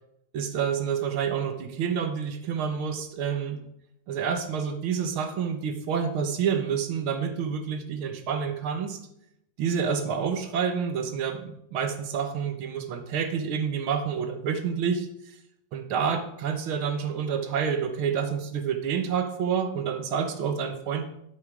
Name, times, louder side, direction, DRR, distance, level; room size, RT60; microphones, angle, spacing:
voice 1, 0.3-3.6 4.1-9.0 9.6-15.1 15.7-21.1, right 7 dB, 85° right, 8 dB, 2.0 m, -28 dB
12.0 x 7.1 x 4.8 m, 0.77 s
omnidirectional pair, 2.3 m